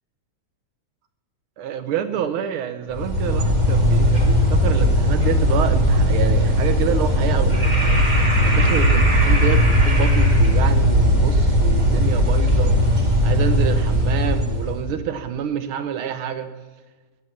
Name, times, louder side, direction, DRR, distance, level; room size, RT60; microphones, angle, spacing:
voice 1, 1.6-12.8 13.2-16.5, right 8 dB, 75° right, 10 dB, 1.3 m, -28 dB
sound 1, 2.9-14.8, equal, 15° right, 1.9 m, -18 dB
15.5 x 9.7 x 7.2 m, 1.3 s
omnidirectional pair, 3.3 m